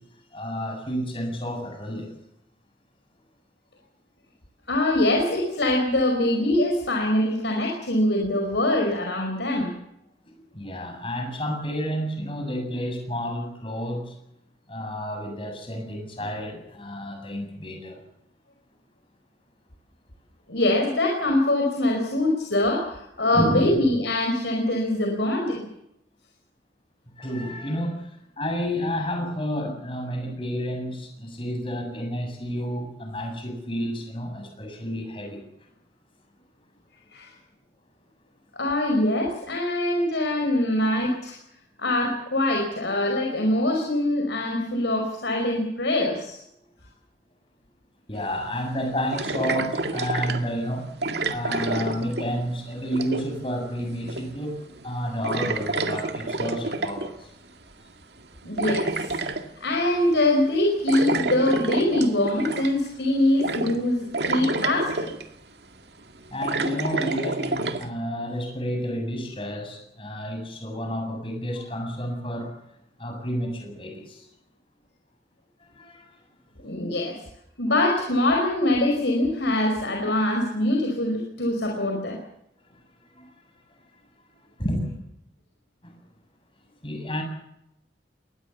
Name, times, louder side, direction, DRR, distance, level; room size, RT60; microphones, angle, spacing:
voice 1, 0.3-2.1 10.3-14.1 14.7-18.0 23.3-23.7 27.2-35.4 48.1-50.9 51.3-57.3 66.3-72.6 73.0-74.3 75.7-76.1 83.1-83.3 84.6-84.9 85.8-85.9 86.8-87.2, equal, 30° left, 3 dB, 7.6 m, -30 dB
voice 2, 4.7-9.7 20.5-25.6 37.1-37.3 38.5-41.4 41.8-46.4 58.4-59.2 59.6-65.1 67.2-67.3 76.6-77.2 77.6-82.2, left 1 dB, 85° left, 2 dB, 5.1 m, -23 dB
sound 1, 48.1-48.2 49.1-50.5 51.0-52.5 52.8-53.4 54.1-54.5 54.7-54.9 55.2-57.1 58.2-59.5 60.9-62.9 63.4-63.8 64.1-65.2 66.0-67.9, right 2 dB, 70° right, 2.1 m, -28 dB
22.5 x 20.0 x 7.2 m, 0.81 s
head